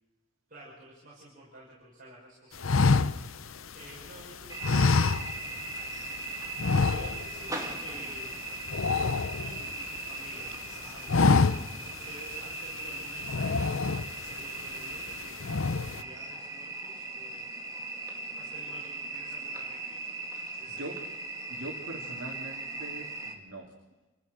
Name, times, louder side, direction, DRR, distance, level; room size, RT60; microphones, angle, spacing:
voice 1, 0.5-8.4 9.4-17.4 18.4-20.1 20.6-21.0, right 1 dB, 45° right, -6 dB, 6.2 m, -51 dB
sound 1, 2.6-4.1 4.6-5.7 6.0-6.2 6.6-7.5 7.7-8.0 8.3-10.0 10.4-10.7 11.0-11.9 12.3-12.4 13.2-14.3 14.8-15.1 15.4-16.0, left 4 dB, 85° left, 0.8 m, -26 dB
sound 2, 4.5-23.3, right 3 dB, 15° right, 2.1 m, -39 dB
voice 2, 21.5-23.7, right 1 dB, 75° right, -3 dB, 3.0 m, -42 dB
28.5 x 14.5 x 6.7 m, 1.1 s
head